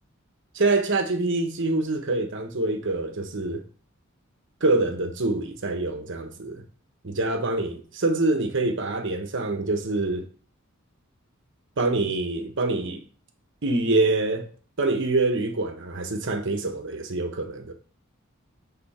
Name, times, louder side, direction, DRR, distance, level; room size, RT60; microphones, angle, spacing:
voice 1, 0.5-3.6 4.6-6.6 7.0-10.3 11.8-13.0 13.6-14.5 14.8-17.7, right 2 dB, 60° right, 1.1 m, -25 dB
7.8 x 3.8 x 4.3 m
head